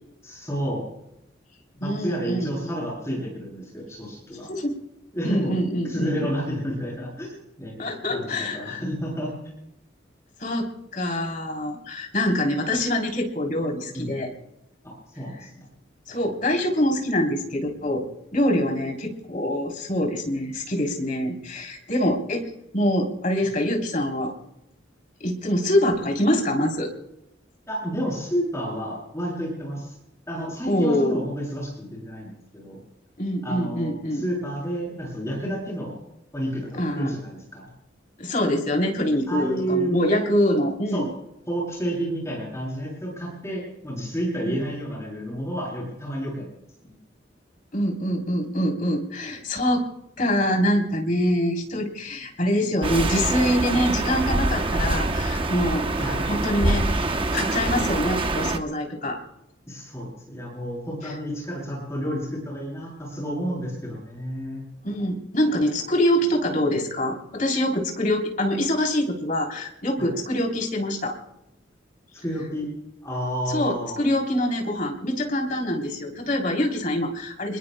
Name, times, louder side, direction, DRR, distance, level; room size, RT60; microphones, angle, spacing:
voice 1, 0.2-0.9 1.7-4.5 5.1-5.5 5.8-9.3 13.9-14.1 14.8-15.7 27.7-29.9 30.3-32.8 33.4-36.0 36.3-37.7 39.3-40.0 40.9-41.1 41.5-46.5 46.8-46.9 56.0-56.3 59.7-64.6 70.0-70.1 72.2-72.7 73.0-74.0, equal, 15° left, -3 dB, 7.7 m, -30 dB
voice 2, 1.8-2.5 4.5-4.8 5.2-6.4 7.8-8.8 10.4-14.3 16.1-18.0 18.3-22.5 22.7-24.3 25.2-26.9 30.7-31.2 33.2-34.2 36.8-37.1 38.2-41.1 44.4-44.6 47.7-49.9 50.2-59.2 64.8-71.2 73.5-77.6, left 1 dB, 45° left, 2 dB, 3.4 m, -25 dB
sound 1, 52.8-58.6, right 2 dB, 30° right, 0.8 m, -25 dB
28.5 x 21.0 x 2.2 m, 0.85 s
head